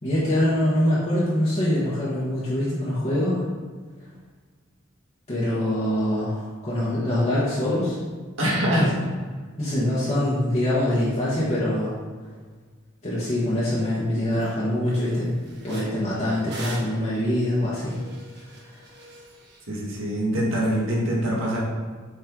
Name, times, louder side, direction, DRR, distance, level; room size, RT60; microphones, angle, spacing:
voice 1, 0.0-3.4 5.3-8.0 8.8-8.9 9.6-11.9 13.0-15.3 15.6-18.0, left 1 dB, 35° left, -9 dB, 1.5 m, -24 dB
voice 2, 8.4-9.0 19.7-21.6, equal, 75° right, -4 dB, 1.9 m, -23 dB
sound 1, 13.8-13.9 14.3-14.5 14.9-19.6, right 1 dB, 55° right, 1.3 m, -42 dB
7.6 x 4.6 x 3.9 m, 1.5 s
head